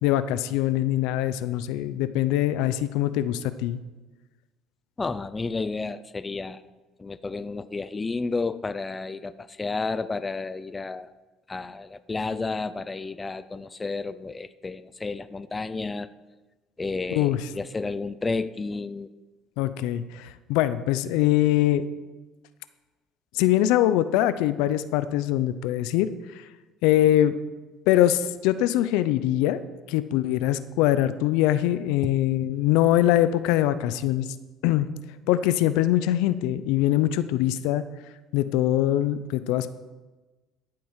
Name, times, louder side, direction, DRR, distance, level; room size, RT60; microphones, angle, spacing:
voice 1, 0.0-3.8 17.1-17.5 19.6-21.8 23.3-26.1 26.8-27.3 27.9-29.6 29.9-34.3 34.6-34.9 35.3-37.8 38.3-39.7, left 13 dB, 85° left, 13 dB, 0.6 m, -23 dB
voice 2, 5.0-6.6 7.0-11.1 11.5-16.1 16.8-19.1, left 3 dB, 20° left, 14 dB, 0.5 m, -31 dB
13.5 x 7.7 x 5.6 m, 1.2 s
supercardioid pair, 100°, 0 cm